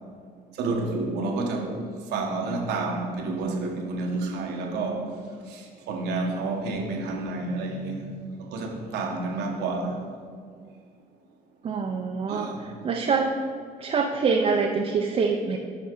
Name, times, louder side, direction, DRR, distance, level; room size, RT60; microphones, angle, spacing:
voice 1, 0.5-1.8 2.1-5.1 5.5-8.1 8.4-10.0 12.3-12.7, right 3 dB, 80° right, 1 dB, 1.1 m, -29 dB
voice 2, 11.6-12.5 12.8-13.3 13.8-15.6, right 5 dB, 35° right, 1 dB, 0.5 m, -25 dB
7.2 x 4.5 x 4.4 m, 2.1 s
cardioid pair, 110°, 17 cm